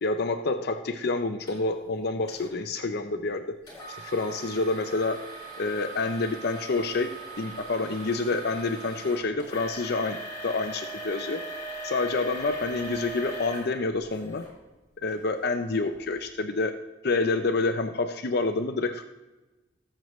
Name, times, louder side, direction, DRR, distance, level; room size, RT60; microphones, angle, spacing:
voice 1, 0.0-3.4 4.0-5.2 5.6-7.1 7.4-10.2 10.4-11.4 11.8-14.4 15.0-16.7 17.0-19.0, left 3 dB, 55° left, 6 dB, 0.6 m, -28 dB
sound 1, 1.5-1.6 2.3-2.5 3.7-14.5 15.1-15.2 15.8-15.9, right 2 dB, 20° left, 4.3 m, -39 dB
17.5 x 7.5 x 3.1 m, 1.1 s
head